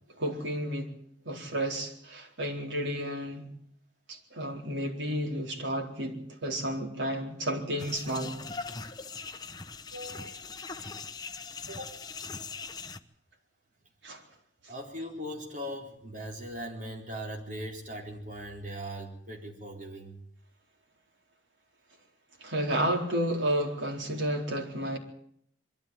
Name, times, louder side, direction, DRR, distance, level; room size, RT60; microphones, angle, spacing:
voice 1, 0.2-0.9 1.2-3.5 4.1-8.4 10.8-10.9 14.0-14.2 22.4-25.0, right 1 dB, 80° right, 4.3 m, -31 dB
sound 1, 7.8-13.0, left 4 dB, 20° left, 0.9 m, -41 dB
voice 2, 9.9-10.4 11.2-11.3 11.7-12.0 14.7-20.2 22.7-22.9, equal, 45° right, 4.1 m, -40 dB
22.5 x 13.5 x 9.1 m
head